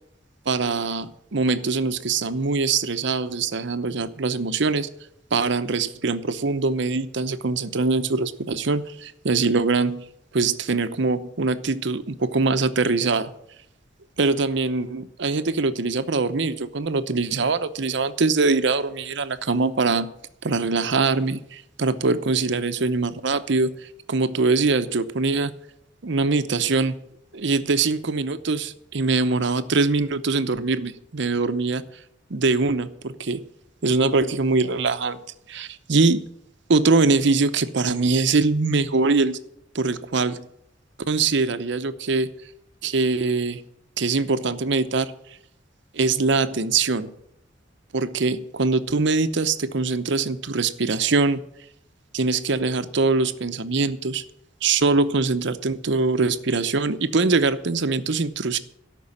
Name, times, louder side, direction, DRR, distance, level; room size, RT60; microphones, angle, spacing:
voice 1, 0.5-4.9 5.3-10.0 10.3-13.3 14.2-20.1 20.4-23.7 24.1-25.5 26.0-26.9 27.3-31.8 32.3-33.4 33.8-35.2 35.5-36.3 36.7-39.4 39.7-40.5 41.1-42.3 42.8-43.6 44.0-45.1 45.9-47.1 47.9-51.4 52.1-54.2 54.6-58.6, right 3 dB, 70° right, 12 dB, 0.8 m, -23 dB
13.0 x 6.2 x 9.7 m, 0.75 s
head